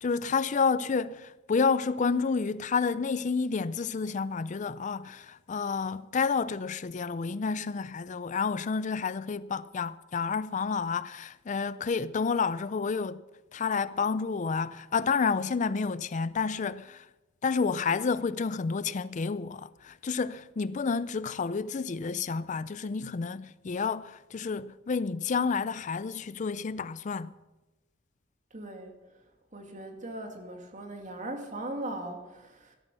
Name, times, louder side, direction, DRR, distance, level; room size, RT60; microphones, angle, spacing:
voice 1, 0.0-13.2 13.5-17.1 17.4-27.3, left 5 dB, 40° left, 0.4 m, -30 dB
voice 2, 28.5-28.9 29.5-32.8, right 1 dB, 40° right, 2.5 m, -39 dB
17.0 x 13.0 x 6.3 m
head